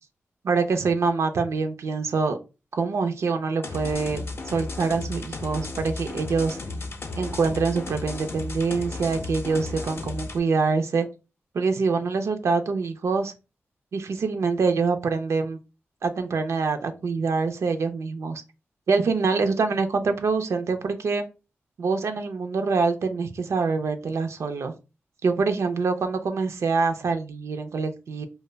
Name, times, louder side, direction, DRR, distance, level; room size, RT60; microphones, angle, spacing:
voice 1, 0.4-2.4 2.7-6.6 7.2-11.1 11.5-13.3 13.9-15.6 16.0-18.4 18.9-21.2 21.8-24.7 25.2-28.3, right 4 dB, 80° right, 0.4 m, -25 dB
sound 1, 3.6-10.4, left 2 dB, 55° left, 0.5 m, -34 dB
2.3 x 2.0 x 3.2 m
wide cardioid pair, 80°, 5 cm